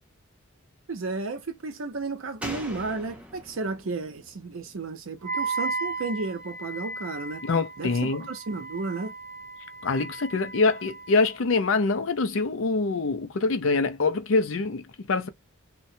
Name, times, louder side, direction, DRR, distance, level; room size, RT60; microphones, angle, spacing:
voice 1, 0.9-7.4 7.8-9.2, right 3 dB, 75° right, 0.7 m, -33 dB
Slam, 2.4-5.9 6.2-6.3, equal, 5° right, 0.6 m, -42 dB
Wind instrument woodwind instrument, 5.2-11.4, right 3 dB, 55° left, 1.0 m, -35 dB
voice 2, 7.4-8.3 9.8-15.3, left 3 dB, 70° left, 0.5 m, -25 dB
2.9 x 2.1 x 2.7 m
head